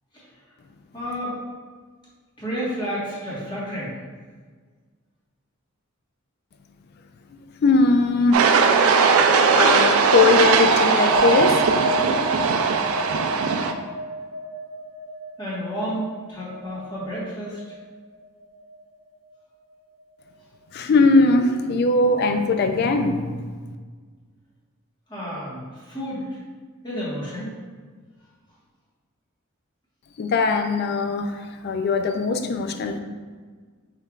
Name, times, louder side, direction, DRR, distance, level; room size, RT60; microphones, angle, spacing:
voice 1, 0.9-1.4 2.4-3.9 15.4-17.6 25.1-26.3 26.8-27.6, equal, 20° left, -8 dB, 1.4 m, -31 dB
voice 2, 7.6-8.5 9.5-11.6 20.7-23.3 30.2-31.3 31.6-33.0, left 3 dB, 50° left, 7 dB, 0.3 m, -20 dB
sound 1, 8.3-13.7, right 5 dB, 85° right, 0.4 m, -19 dB
sound 2, 11.1-17.8 18.1-18.8, right 1 dB, 25° right, 1.0 m, -31 dB
5.4 x 3.3 x 2.4 m, 1.5 s
head